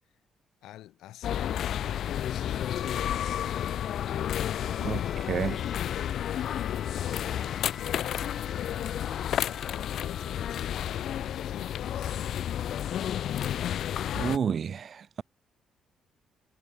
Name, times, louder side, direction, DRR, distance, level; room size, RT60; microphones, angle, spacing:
voice 1, 0.6-3.4 4.8-7.2 7.7-9.0 9.3-12.2, left 14 dB, 85° left, 6.4 m, -46 dB
sound 1, 1.2-14.4, left 10 dB, 70° left, 1.2 m, -31 dB
sound 2, 4.4-12.0, left 4 dB, 30° left, 1.9 m, -49 dB
voice 2, 14.2-15.2, right 7 dB, 50° right, 0.6 m, -30 dB
cardioid pair, 90°, 0 cm